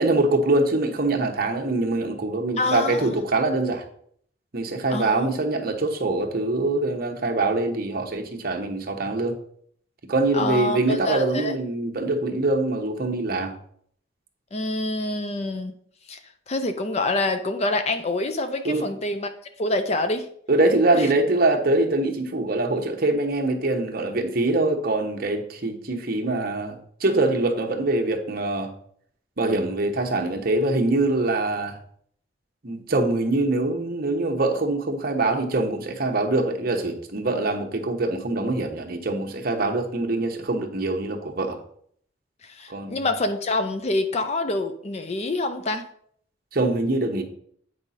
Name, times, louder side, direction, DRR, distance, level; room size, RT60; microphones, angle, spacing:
voice 1, 0.0-3.8 4.5-9.4 10.1-13.5 18.6-18.9 20.5-28.7 29.4-31.8 32.6-41.6 42.7-43.1 46.5-47.2, right 2 dB, 50° right, 4 dB, 1.0 m, -24 dB
voice 2, 2.6-3.1 4.9-5.3 10.3-11.5 14.5-15.7 16.1-16.2 16.5-19.3 19.6-20.3 20.9-21.1 42.4-45.8, left 2 dB, 35° left, 8 dB, 0.5 m, -26 dB
8.9 x 4.9 x 4.1 m, 0.63 s
head